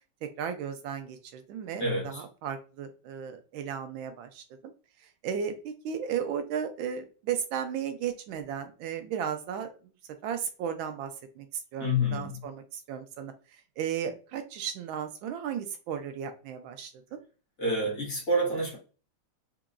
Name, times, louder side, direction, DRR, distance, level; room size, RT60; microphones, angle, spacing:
voice 1, 0.4-4.4 5.2-9.7 10.2-11.1 11.4-11.5 11.7-13.3 13.8-17.2, right 8 dB, 80° right, 1.3 m, -35 dB
voice 2, 1.8-2.2 11.8-12.4 17.6-18.8, equal, 45° left, 1.9 m, -28 dB
4.4 x 2.9 x 2.4 m
omnidirectional pair, 2.2 m